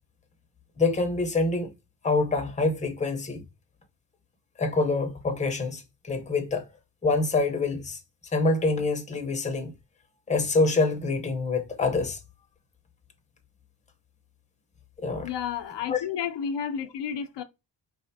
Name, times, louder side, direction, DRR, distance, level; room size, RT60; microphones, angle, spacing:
voice 1, 0.8-1.7 2.0-3.4 4.6-6.7 7.0-8.0 8.3-9.7 10.3-12.2 15.0-15.3 15.9-16.0, left 3 dB, 15° left, 0.7 m, -26 dB
voice 2, 15.2-17.4, left 8 dB, 75° left, 0.7 m, -31 dB
4.8 x 3.3 x 2.7 m
wide cardioid pair, 150°, 42 cm